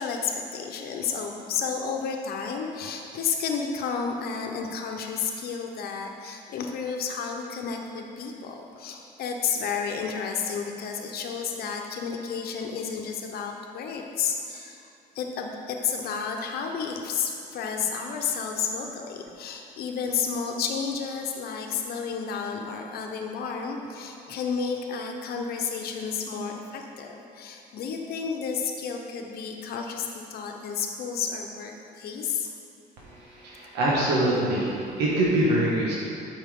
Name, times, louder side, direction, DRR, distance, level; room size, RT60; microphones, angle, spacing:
voice 1, 0.0-14.9 15.1-32.5, left 6 dB, 65° left, 2 dB, 0.9 m, -31 dB
voice 2, 33.3-35.9, right 1 dB, 85° right, -5 dB, 1.5 m, -24 dB
12.0 x 5.7 x 3.8 m, 2.7 s
cardioid pair, 110°, 17 cm